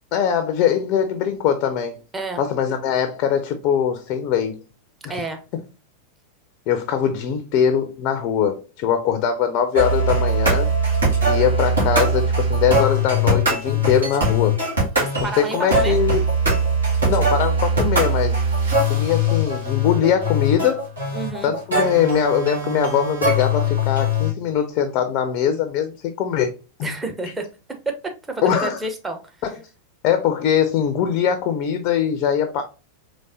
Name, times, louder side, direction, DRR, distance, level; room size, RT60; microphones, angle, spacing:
voice 1, 0.1-2.0 2.4-4.6 6.7-10.7 11.3-14.6 15.2-16.2 17.1-18.4 18.9-20.9 21.4-26.5 26.8-26.9 28.4-28.8 29.4-29.5 30.0-32.6, left 8 dB, 40° left, 0.5 m, -21 dB
voice 2, 5.1-5.4 15.0-16.0 21.1-21.5 26.8-27.4 27.9-28.0 28.3-29.2, right 3 dB, 15° right, 0.8 m, -29 dB
sound 1, 9.7-24.3, equal, 75° right, 1.7 m, -21 dB
3.9 x 3.1 x 2.6 m
figure-of-eight pair, 90°, 0 cm